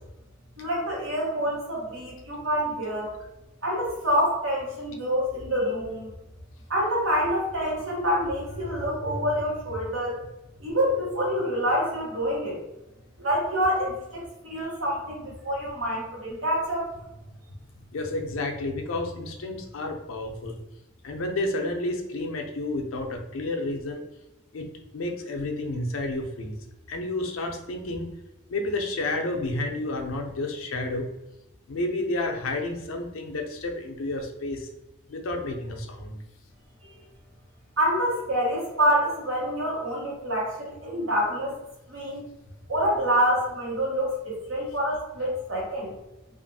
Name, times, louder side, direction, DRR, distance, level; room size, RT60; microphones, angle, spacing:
voice 1, 0.6-3.1 3.6-6.1 6.7-10.2 10.6-12.6 13.2-16.9 36.8-37.0 37.8-41.6 41.9-42.2 42.7-45.9, equal, 85° right, -4 dB, 1.1 m, -27 dB
voice 2, 17.9-20.5 21.0-24.0 24.5-26.6 26.9-28.1 28.5-31.1 31.7-34.7 35.1-36.2, left 2 dB, 90° left, 3 dB, 0.5 m, -30 dB
2.6 x 2.4 x 2.6 m, 0.94 s
head